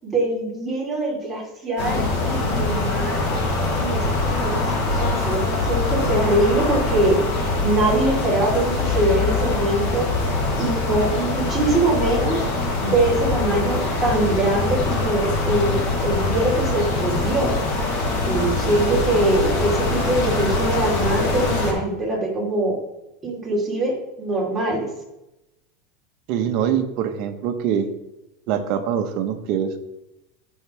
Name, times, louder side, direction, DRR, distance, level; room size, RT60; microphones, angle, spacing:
voice 1, 0.0-3.2 3.8-7.2 7.6-10.1 10.6-12.5 12.8-17.5 18.3-22.8 23.2-24.9, right 2 dB, 10° right, -5 dB, 3.8 m, -23 dB
sound 1, 1.8-21.7, left 3 dB, 50° left, 3.6 m, -23 dB
voice 2, 26.3-27.9 28.5-29.8, right 8 dB, 55° right, 7 dB, 1.2 m, -23 dB
15.5 x 5.6 x 3.5 m, 0.94 s
supercardioid pair, 135°, 0 cm